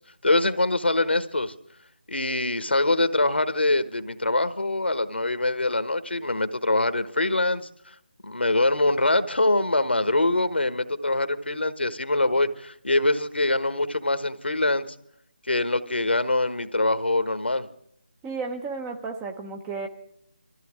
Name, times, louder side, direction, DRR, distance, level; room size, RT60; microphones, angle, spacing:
voice 1, 0.2-1.5 2.1-7.7 8.2-14.9 15.5-17.7, left 2 dB, 80° left, 11 dB, 1.3 m, -24 dB
voice 2, 18.2-19.9, right 4 dB, 10° right, 4 dB, 0.8 m, -33 dB
23.0 x 14.5 x 3.7 m, 0.70 s
figure-of-eight pair, 155°, 6 cm